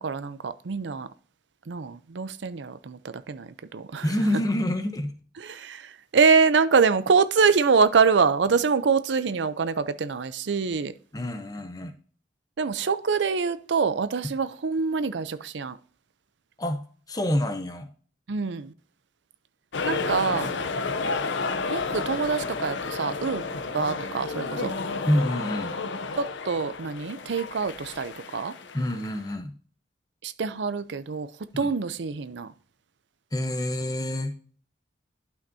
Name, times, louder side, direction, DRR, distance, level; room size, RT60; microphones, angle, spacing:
voice 1, 0.0-1.1 1.7-4.1 5.4-10.9 12.6-15.8 18.3-18.7 19.8-20.5 21.7-23.4 23.7-24.7 26.2-28.5 30.2-31.3 31.6-32.5, right 5 dB, 80° right, 0.5 m, -25 dB
voice 2, 4.0-5.1 11.1-11.9 16.6-16.8 17.1-17.9 25.1-25.8 28.7-29.5 31.5-31.7 33.3-34.4, left 1 dB, 20° left, 0.8 m, -27 dB
sound 1, 19.7-29.3, left 4 dB, 85° left, 0.6 m, -31 dB
11.5 x 5.8 x 2.7 m
head